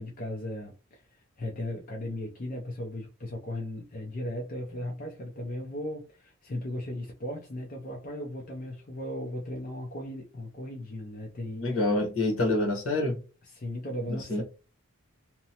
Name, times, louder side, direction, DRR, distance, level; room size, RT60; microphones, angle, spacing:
voice 1, 0.0-11.6 13.5-14.4, left 1 dB, 35° left, 0.4 m, -37 dB
voice 2, 11.6-13.2 14.1-14.4, left 2 dB, 70° left, 1.1 m, -27 dB
2.8 x 2.0 x 2.7 m
head